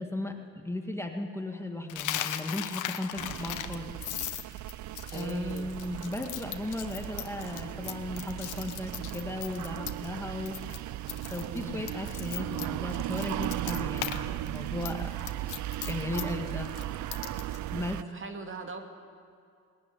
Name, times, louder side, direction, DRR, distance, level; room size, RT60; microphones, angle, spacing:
voice 1, 0.0-3.9 5.1-10.6 11.3-15.1 15.9-16.7 17.7-18.0, left 1 dB, 10° left, 3 dB, 1.9 m, -36 dB
Coin (dropping), 1.9-10.2 10.5-10.8 11.1-14.2 14.5-17.6, left 12 dB, 80° left, 1.1 m, -38 dB
sound 1, 3.2-18.0, right 14 dB, 70° right, 0.5 m, -37 dB
voice 2, 5.0-5.7 11.5-11.9 16.1-16.5 18.0-18.8, right 4 dB, 40° right, 5 dB, 2.4 m, -41 dB
20.0 x 15.5 x 10.0 m, 2.3 s
cardioid pair, 90°, 30 cm